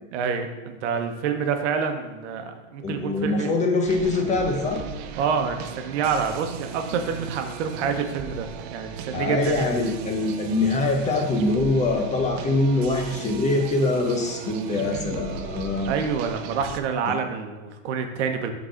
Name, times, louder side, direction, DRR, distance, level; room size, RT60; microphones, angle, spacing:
voice 1, 0.1-3.5 5.2-9.7 14.8-15.2 15.9-18.5, right 6 dB, 60° right, 6 dB, 1.0 m, -27 dB
voice 2, 2.8-4.8 9.1-15.9 17.1-17.2, left 2 dB, 20° left, 3 dB, 0.7 m, -24 dB
sound 1, 3.9-16.8, right 7 dB, 30° right, 0.4 m, -37 dB
11.0 x 4.0 x 3.8 m, 1.1 s
supercardioid pair, 135°, 39 cm